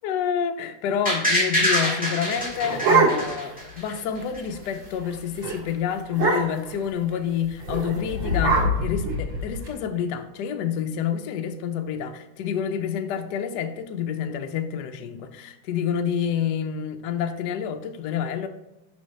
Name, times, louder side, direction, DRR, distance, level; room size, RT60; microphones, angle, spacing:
voice 1, 0.0-18.5, left 8 dB, 70° left, 7 dB, 1.1 m, -28 dB
sound 1, 1.1-4.0 4.3-4.4, equal, 5° right, 1.7 m, -24 dB
sound 2, 2.3-3.5 3.9-4.0 4.3-4.6 4.9-5.1 5.4-5.6 6.1-6.7 7.6-9.7, right 2 dB, 85° right, 2.5 m, -23 dB
6.3 x 6.2 x 3.2 m, 1.0 s
omnidirectional pair, 2.1 m